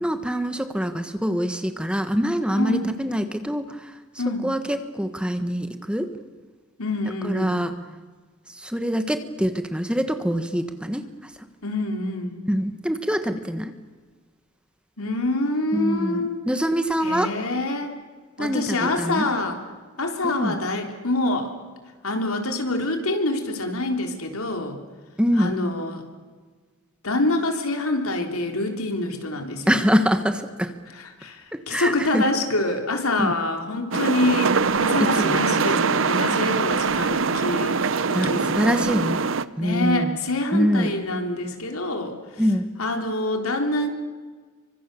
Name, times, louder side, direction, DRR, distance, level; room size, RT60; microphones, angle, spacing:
voice 1, 0.0-3.9 4.4-6.1 7.2-7.7 8.5-11.0 12.5-13.7 15.7-17.3 18.4-19.3 20.2-20.6 25.2-25.5 29.7-30.7 31.5-32.3 33.2-33.3 35.0-35.6 38.1-39.2 39.6-40.2 40.5-40.9 42.4-42.7, equal, 5° right, 8 dB, 1.3 m, -24 dB
voice 2, 2.6-2.9 4.2-4.5 6.8-7.7 11.6-12.4 15.0-16.3 17.0-18.0 18.4-19.6 20.0-21.5 22.0-24.8 25.4-26.0 27.0-29.7 30.9-37.8 38.1-38.5 39.6-42.2 42.8-43.9, left 2 dB, 85° left, 4 dB, 3.8 m, -26 dB
sound 1, 33.9-39.4, right 4 dB, 65° right, 0.8 m, -23 dB
28.5 x 25.0 x 7.0 m, 1.4 s
head